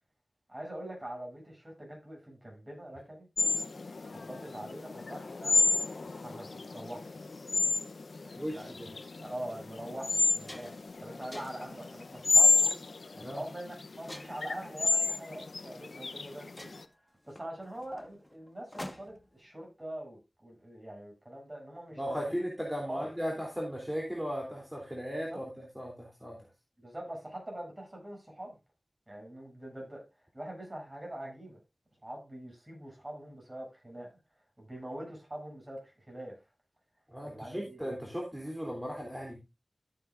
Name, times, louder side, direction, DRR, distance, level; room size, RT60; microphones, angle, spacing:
voice 1, 0.5-3.3 4.0-5.6 6.1-7.1 8.2-8.9 9.2-10.7 11.0-12.7 13.1-16.7 17.3-22.3 22.9-23.1 25.3-25.4 26.8-28.6 29.1-30.0 30.3-31.6 32.0-34.1 34.6-36.4 37.2-37.8, right 1 dB, 30° right, 7.7 m, -43 dB
sound 1, 3.4-16.8, left 4 dB, 90° left, 0.8 m, -29 dB
voice 2, 8.4-8.9 13.2-13.4 22.0-25.4 25.7-26.4 37.1-39.4, equal, 5° right, 3.2 m, -36 dB
sound 2, 9.0-9.2 9.8-9.9 10.2-10.9 11.3-11.8 12.4-12.7 14.1-14.6 15.7-15.8 16.2-16.3 16.6-19.3, left 1 dB, 20° left, 1.5 m, -47 dB
14.0 x 8.5 x 2.6 m
wide cardioid pair, 50°, 0 cm